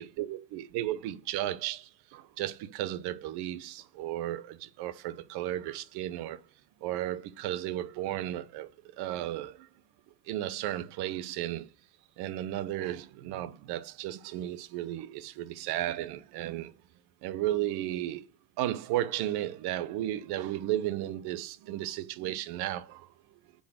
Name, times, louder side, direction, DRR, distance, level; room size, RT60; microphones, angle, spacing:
voice 1, 0.0-6.4 6.8-8.7 9.0-9.7 10.2-11.7 12.2-16.7 17.2-18.2 18.6-23.1, right 13 dB, 65° right, 0.9 m, -34 dB
8.3 x 4.0 x 6.3 m
hypercardioid pair, 65°, 42 cm